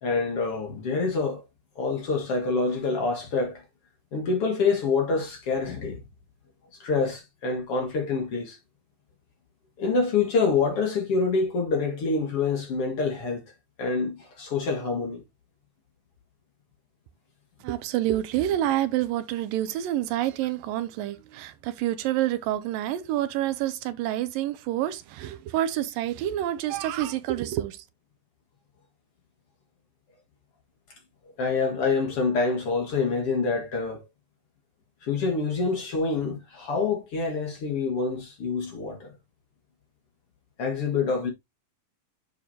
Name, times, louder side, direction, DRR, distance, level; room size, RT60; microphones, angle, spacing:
voice 1, 0.0-1.5 1.8-3.6 4.1-6.0 6.8-8.6 9.8-13.4 13.8-15.2 31.4-34.1 35.0-39.1 40.6-41.3, left 4 dB, 45° left, 2.3 m, -26 dB
voice 2, 17.6-27.8, right 13 dB, 80° right, 2.4 m, -28 dB
8.9 x 6.4 x 2.7 m
omnidirectional pair, 4.1 m